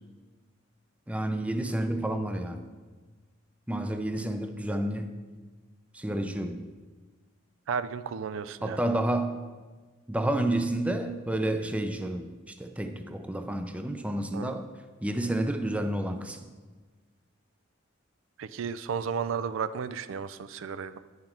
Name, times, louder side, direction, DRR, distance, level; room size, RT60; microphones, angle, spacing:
voice 1, 1.1-2.6 3.7-5.1 5.9-6.6 8.6-9.4 10.1-14.7 15.0-16.4, right 1 dB, 5° right, 0.4 m, -30 dB
voice 2, 7.7-8.8 14.3-14.5 18.4-21.0, right 6 dB, 80° right, 0.4 m, -33 dB
10.5 x 5.8 x 4.4 m
head